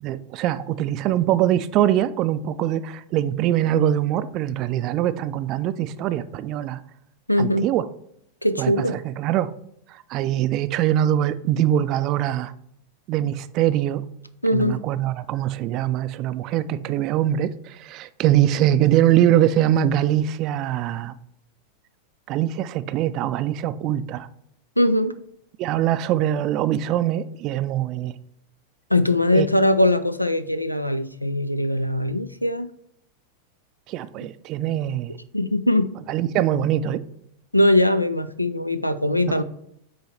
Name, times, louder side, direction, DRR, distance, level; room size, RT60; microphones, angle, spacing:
voice 1, 0.0-6.8 7.4-7.8 8.6-8.7 9.0-9.5 10.1-12.5 13.1-14.0 14.5-21.1 22.3-24.3 25.6-28.1 29.3-29.5 33.9-35.1 36.1-37.0 39.3-39.4, right 12 dB, 40° right, 13 dB, 0.4 m, -22 dB
voice 2, 7.3-7.7 8.4-9.0 14.4-14.8 24.8-25.2 28.9-32.7 35.3-35.9 37.5-39.4, left 1 dB, 85° left, 13 dB, 0.4 m, -21 dB
8.3 x 3.1 x 4.4 m, 0.72 s
figure-of-eight pair, 90°, 0 cm